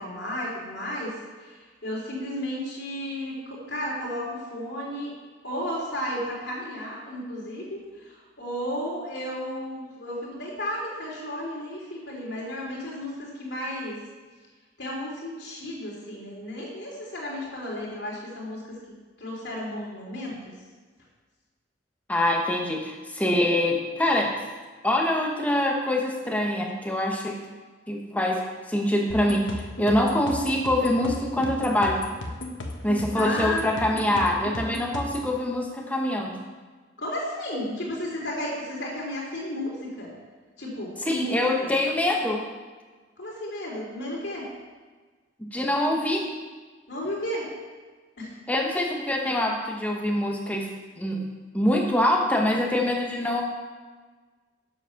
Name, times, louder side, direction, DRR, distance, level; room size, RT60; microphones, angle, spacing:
voice 1, 0.0-5.1 5.4-14.0 14.8-18.8 19.2-20.5 33.1-33.7 37.0-40.1 40.6-41.7 43.2-44.5 46.9-47.5 48.2-48.3, left 1 dB, 65° left, -4 dB, 3.0 m, -33 dB
voice 2, 22.1-24.4 24.8-27.4 27.9-28.4 28.7-32.0 32.8-36.3 41.0-42.4 45.4-46.3 48.5-50.7 51.0-51.3 51.5-53.4, left 1 dB, 10° left, 0 dB, 1.0 m, -24 dB
sound 1, 29.1-35.3, left 1 dB, 80° left, 1.2 m, -35 dB
7.8 x 7.2 x 5.8 m, 1.4 s
head